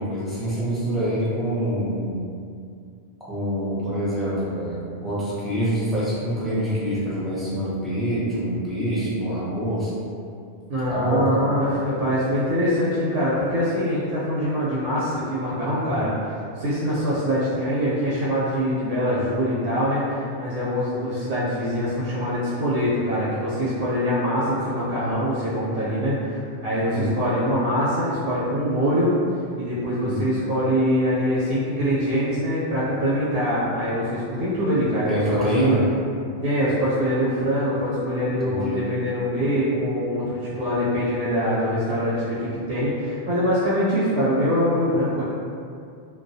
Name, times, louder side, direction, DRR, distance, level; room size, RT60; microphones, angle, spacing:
voice 1, 0.0-2.2 3.3-9.9 10.9-11.5 26.9-27.1 30.0-30.2 35.1-35.8 38.4-38.8, right 1 dB, ahead, -11 dB, 0.4 m, -25 dB
voice 2, 10.7-29.1 29.6-35.7 36.4-45.2, equal, 80° right, -9 dB, 0.9 m, -24 dB
2.3 x 2.1 x 2.6 m, 2.4 s
omnidirectional pair, 1.1 m